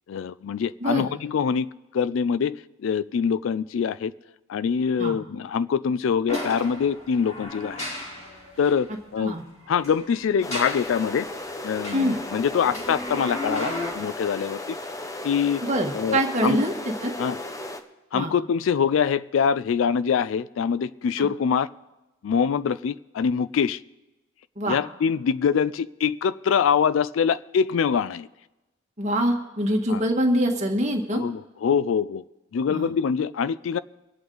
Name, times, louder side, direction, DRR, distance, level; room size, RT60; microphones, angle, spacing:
voice 1, 0.1-4.1 4.5-7.8 8.6-9.4 9.7-11.3 11.6-14.8 15.2-15.6 15.9-16.6 17.2-17.4 18.1-21.7 22.2-23.8 24.7-28.3 29.9-30.0 31.1-32.2 32.5-33.8, left 7 dB, 75° left, 0.3 m, -24 dB
sound 1, 6.3-8.8 9.7-11.1 11.6-13.9, left 1 dB, 35° left, 3.0 m, -34 dB
sound 2, 10.4-17.8, left 1 dB, 15° left, 0.8 m, -35 dB
voice 2, 15.6-16.7 17.0-17.1 18.1-18.3 21.2-21.3 24.6-24.8 29.0-31.2 32.7-32.9, equal, 35° right, 1.8 m, -24 dB
24.5 x 8.4 x 4.0 m
head